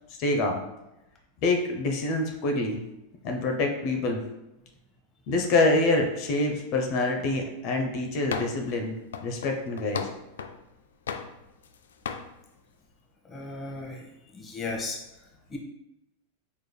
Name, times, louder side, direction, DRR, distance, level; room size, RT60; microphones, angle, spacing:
voice 1, 0.2-0.6 1.4-2.8 3.2-4.2 5.3-9.0 9.2-10.1, left 2 dB, 50° left, 3 dB, 0.7 m, -26 dB
sound 1, 8.3-8.7 9.1-10.6 11.1-11.8 12.1-12.3, left 6 dB, 80° left, 0.3 m, -35 dB
voice 2, 13.3-14.0 14.3-15.0 15.5-15.6, left 3 dB, 25° left, 0 dB, 1.0 m, -35 dB
4.9 x 3.3 x 2.2 m, 0.91 s
hypercardioid pair, 105°, 0 cm